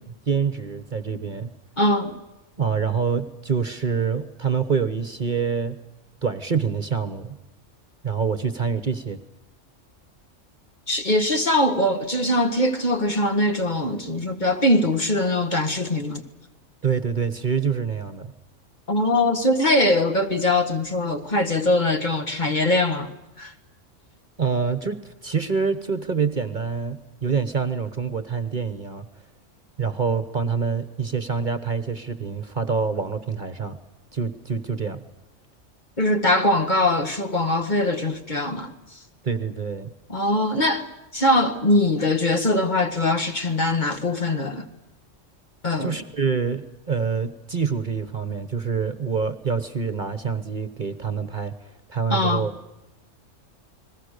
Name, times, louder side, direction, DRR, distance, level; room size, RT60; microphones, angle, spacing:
voice 1, 0.3-1.5 2.6-5.8 6.2-7.4 8.0-9.2 16.8-18.3 24.4-29.1 29.8-33.8 34.1-35.0 39.2-39.9 45.8-52.5, right 6 dB, 40° right, 1.3 m, -26 dB
voice 2, 1.8-2.1 10.9-16.2 18.9-23.1 23.4-23.5 36.0-39.0 40.1-40.9 41.1-44.7 45.6-46.0 52.1-52.4, left 1 dB, 35° left, 1.9 m, -22 dB
30.0 x 20.5 x 6.6 m
omnidirectional pair, 1.3 m